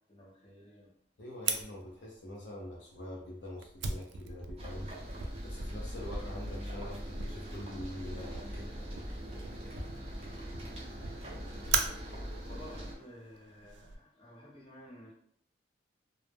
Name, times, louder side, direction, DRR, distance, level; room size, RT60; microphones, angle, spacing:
voice 1, 0.1-0.9 10.5-10.9 12.4-15.1, equal, 30° left, -4 dB, 0.8 m, -52 dB
voice 2, 1.2-4.9 5.4-8.6 8.9-9.5, left 1 dB, 75° left, -3 dB, 0.5 m, -45 dB
Fire, 1.4-13.9, right 5 dB, 85° right, 0.3 m, -40 dB
sound 1, 4.6-12.9, equal, 35° right, 0.6 m, -41 dB
2.1 x 2.0 x 3.2 m, 0.67 s
head